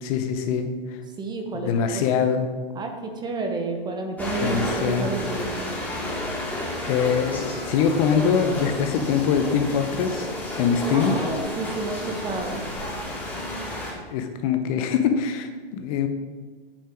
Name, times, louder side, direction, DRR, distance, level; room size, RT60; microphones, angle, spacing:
voice 1, 0.0-1.0 1.6-2.5 4.4-5.1 6.8-10.3 10.6-11.2 14.1-16.1, left 7 dB, 40° left, 7 dB, 0.8 m, -23 dB
voice 2, 1.2-2.0 2.7-5.7 10.9-12.6, right 3 dB, 15° right, 4 dB, 0.9 m, -30 dB
sound 1, 4.2-13.9, left 1 dB, 5° left, 2.1 m, -31 dB
8.7 x 5.6 x 5.0 m, 1.4 s
hypercardioid pair, 125°, 29 cm